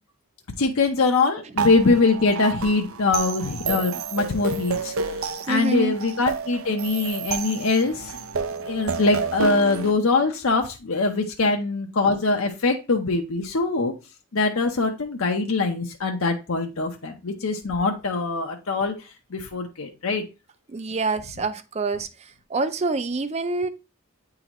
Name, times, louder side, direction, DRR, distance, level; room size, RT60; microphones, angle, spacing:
voice 1, 0.6-4.9 5.5-8.2 8.6-13.9 14.3-18.9 19.3-20.3, left 3 dB, 75° left, 0.7 m, -23 dB
sound 1, 1.6-9.9, right 5 dB, 80° right, 0.6 m, -30 dB
voice 2, 5.5-6.0 20.7-22.1 22.5-23.7, right 3 dB, 30° right, 0.4 m, -26 dB
8.9 x 3.8 x 3.0 m
head